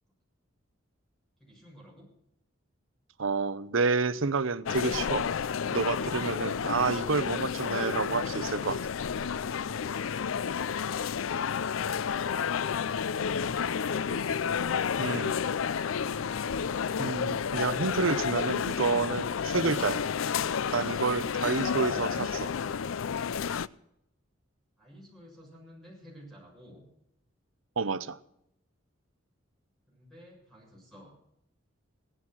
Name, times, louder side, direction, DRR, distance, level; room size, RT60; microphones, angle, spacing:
voice 1, 1.4-2.1 24.8-26.9 29.9-31.1, equal, ahead, 7.1 m, -53 dB
voice 2, 3.2-5.3 5.7-8.8 15.0-15.4 17.0-20.0 20.7-22.5 27.8-28.2, right 4 dB, 85° right, 0.8 m, -29 dB
sound 1, 4.7-23.7, left 7 dB, 90° left, 0.5 m, -31 dB
17.0 x 11.0 x 6.2 m
head